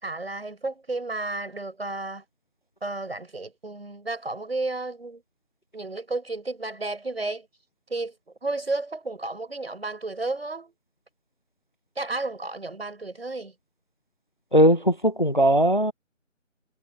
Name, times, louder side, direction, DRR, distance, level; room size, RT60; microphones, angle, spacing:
voice 1, 0.0-2.2 2.8-5.2 5.7-7.5 7.9-8.1 8.4-10.7 12.0-13.5, right 2 dB, 50° right, 7.0 m, -32 dB
voice 2, 14.5-15.9, equal, 40° left, 0.7 m, -19 dB
figure-of-eight pair, 180°, 38 cm